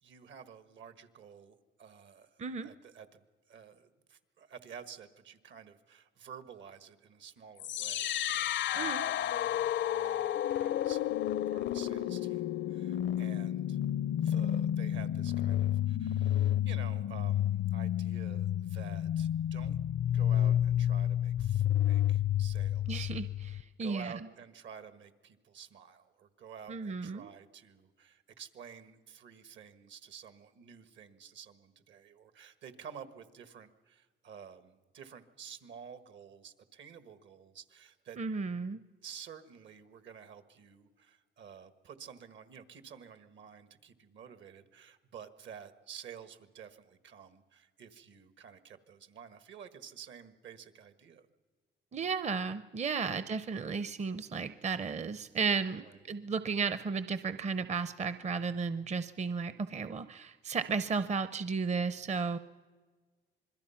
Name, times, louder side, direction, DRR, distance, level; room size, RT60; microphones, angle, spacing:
voice 1, 0.0-11.2 11.5-13.8 14.2-19.8 20.1-23.1 23.5-38.2 39.0-51.3 53.0-53.2 55.7-56.0, right 7 dB, 70° right, 11 dB, 1.6 m, -51 dB
voice 2, 2.4-2.7 8.7-9.1 22.9-23.2 23.6-24.2 26.7-27.3 38.2-38.8 51.9-62.4, right 5 dB, 35° right, 13 dB, 0.7 m, -34 dB
sound 1, 7.6-23.6, left 11 dB, 65° left, 0.6 m, -31 dB
26.5 x 21.5 x 5.8 m, 1.4 s
cardioid pair, 90°, 20 cm